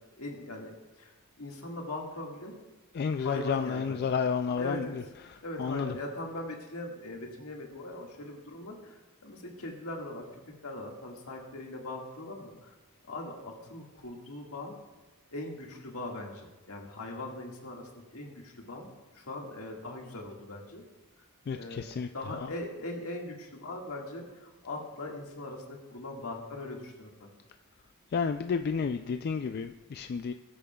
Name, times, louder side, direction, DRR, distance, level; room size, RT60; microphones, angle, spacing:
voice 1, 0.0-2.6 3.2-4.0 4.5-5.1 5.4-10.3 10.6-12.7 13.0-14.8 15.3-20.8 21.2-21.3 21.5-21.9 22.1-27.3, left 2 dB, 75° left, 0 dB, 1.8 m, -40 dB
voice 2, 3.0-4.9 5.6-5.9 21.5-22.1 28.1-30.3, left 6 dB, 45° left, 7 dB, 0.3 m, -31 dB
19.0 x 8.6 x 2.3 m, 1.2 s
head